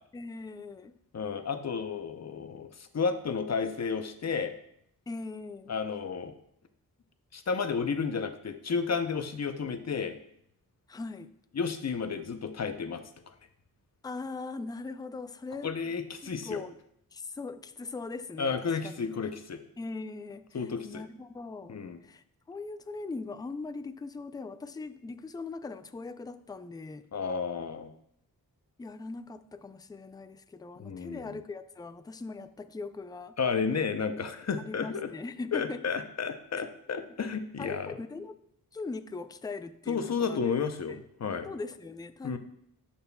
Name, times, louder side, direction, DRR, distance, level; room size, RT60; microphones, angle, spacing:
voice 1, 0.1-0.9 5.1-5.7 10.9-11.3 14.0-15.9 16.4-16.8 17.1-19.0 19.8-27.1 28.8-33.4 34.6-35.8 37.6-38.4 38.7-40.4 40.9-41.0 41.4-42.4, left 3 dB, 10° left, 11 dB, 0.3 m, -40 dB
voice 2, 1.1-4.5 5.7-6.3 7.3-10.2 11.5-13.3 15.6-16.6 18.4-19.6 20.5-21.0 21.7-22.0 27.1-27.9 30.8-31.4 33.4-35.1 35.5-37.9 39.9-41.5 42.2-42.4, left 5 dB, 45° left, 8 dB, 0.7 m, -32 dB
12.0 x 4.3 x 2.2 m, 0.70 s
cardioid pair, 70°, 38 cm